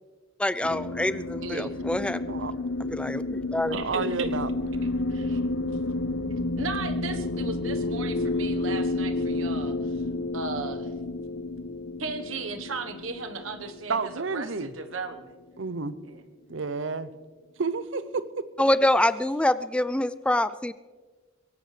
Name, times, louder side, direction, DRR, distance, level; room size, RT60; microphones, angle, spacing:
voice 1, 0.4-2.4 2.8-3.8 18.6-20.7, left 1 dB, 5° left, 14 dB, 0.4 m, -25 dB
sound 1, 0.6-15.2, left 2 dB, 90° left, 0.9 m, -31 dB
voice 2, 1.4-1.7 3.7-4.3 5.1-5.4 6.6-10.0 10.3-10.9 12.0-15.3 16.0-16.2, right 4 dB, 85° right, 7 dB, 1.3 m, -36 dB
voice 3, 3.7-4.5 13.9-14.7 15.6-16.0 16.5-17.1 17.6-18.4, right 4 dB, 65° right, 14 dB, 0.7 m, -30 dB
23.5 x 17.5 x 3.3 m, 1.5 s
head